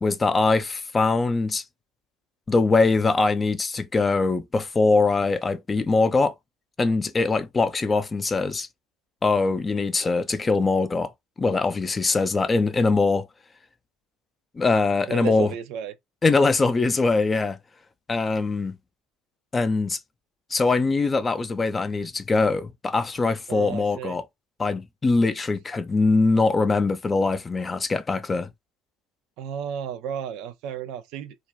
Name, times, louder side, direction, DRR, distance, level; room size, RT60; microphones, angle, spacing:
voice 1, 0.0-1.6 2.5-6.3 6.8-8.7 9.2-11.1 11.4-13.3 14.6-15.5 16.2-17.6 18.1-18.8 19.5-20.0 20.5-24.2 24.6-28.5, left 3 dB, 25° left, 0.4 m, -22 dB
voice 2, 15.1-15.9 23.5-24.2 29.4-31.4, right 9 dB, 60° right, 0.4 m, -33 dB
2.4 x 2.2 x 3.4 m
figure-of-eight pair, 65°, 0 cm